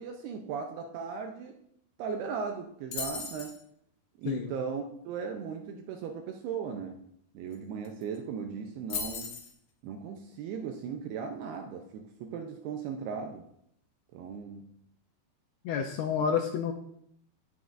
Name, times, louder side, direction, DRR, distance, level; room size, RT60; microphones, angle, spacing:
voice 1, 0.0-1.6 2.0-3.6 4.2-7.0 7.3-9.4 9.8-13.4 14.1-14.7, right 6 dB, 80° right, 4 dB, 2.3 m, -37 dB
sound 1, 2.9-3.6 7.5-7.6 7.8-8.2 8.9-9.5, left 5 dB, 60° left, 2.6 m, -36 dB
voice 2, 4.3-4.6 15.6-16.7, left 7 dB, 85° left, 3 dB, 2.3 m, -29 dB
17.5 x 6.3 x 2.5 m, 0.72 s
omnidirectional pair, 5.2 m